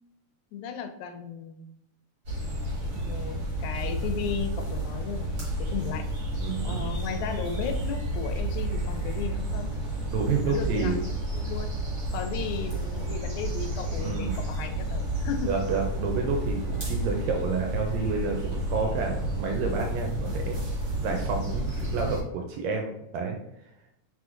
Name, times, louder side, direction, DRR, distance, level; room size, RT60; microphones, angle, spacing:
voice 1, 0.5-1.7 3.0-6.0 6.6-9.7 10.4-11.0 11.3-11.7 12.1-15.5, left 6 dB, 85° left, 6 dB, 1.9 m, -35 dB
sound 1, 2.2-22.2, right 1 dB, 40° right, 1.0 m, -31 dB
voice 2, 6.4-6.8 10.1-11.0 14.0-14.4 15.4-20.6 21.0-23.4, right 4 dB, 80° right, 2 dB, 1.7 m, -29 dB
4.7 x 3.6 x 2.5 m, 0.83 s
omnidirectional pair, 3.4 m